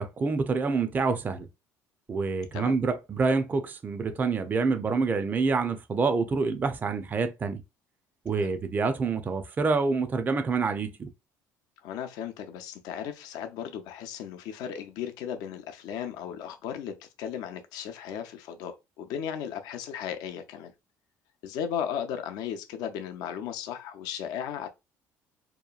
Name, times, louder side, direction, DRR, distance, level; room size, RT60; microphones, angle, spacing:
voice 1, 0.0-1.5 2.1-7.6 8.3-11.1, right 4 dB, 25° right, 0.4 m, -27 dB
voice 2, 11.8-20.7 21.4-24.7, left 8 dB, 80° left, 0.4 m, -36 dB
2.8 x 2.2 x 2.3 m
cardioid pair, 95°, 7 cm